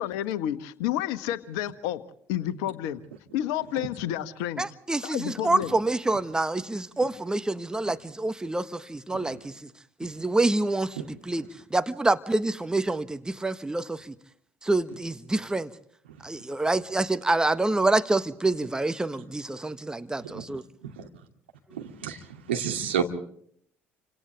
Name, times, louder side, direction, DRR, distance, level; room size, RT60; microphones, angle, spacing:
voice 1, 0.0-2.0 2.3-3.0 3.3-4.6 5.0-5.7, left 12 dB, 65° left, 1.3 m, -30 dB
voice 2, 4.6-9.7 10.0-14.1 14.6-15.7 16.2-20.6, right 2 dB, 10° right, 1.4 m, -27 dB
voice 3, 21.7-22.2 22.5-23.0, right 8 dB, 80° right, 2.6 m, -29 dB
29.0 x 26.5 x 3.4 m
figure-of-eight pair, 55°, 6 cm